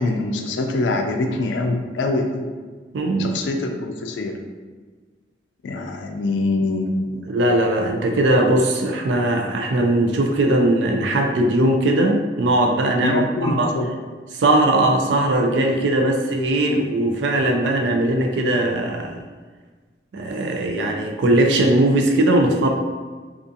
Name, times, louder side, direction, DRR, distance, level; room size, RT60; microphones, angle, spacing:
voice 1, 0.0-2.5 3.2-4.4 5.6-7.3 13.0-13.9, left 2 dB, 85° left, 4 dB, 0.4 m, -24 dB
voice 2, 2.9-3.4 7.3-13.7 14.3-19.2 20.1-22.7, right 1 dB, 80° right, 3 dB, 0.4 m, -19 dB
2.5 x 2.4 x 2.6 m, 1.4 s
head